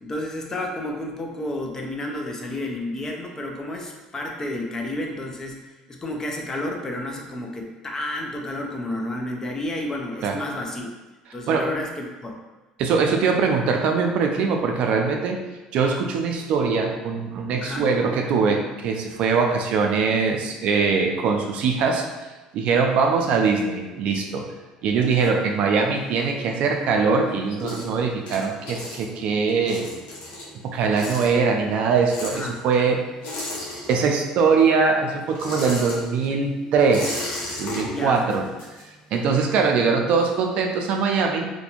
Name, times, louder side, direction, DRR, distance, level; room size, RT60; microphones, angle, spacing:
voice 1, 0.0-10.9 11.3-12.4 17.6-17.9 25.2-25.4 32.2-32.6 37.9-38.3, left 1 dB, 25° left, 1 dB, 0.4 m, -31 dB
voice 2, 12.8-15.4 15.7-24.4 24.8-29.9 30.6-33.0 33.9-37.3 37.6-38.4 39.1-41.5, right 5 dB, 65° right, 2 dB, 0.4 m, -22 dB
sound 1, 25.3-26.9 27.2-34.4 34.7-39.4, left 2 dB, 70° left, 0.7 m, -36 dB
2.5 x 2.2 x 2.8 m, 1.2 s
supercardioid pair, 100°, 2 cm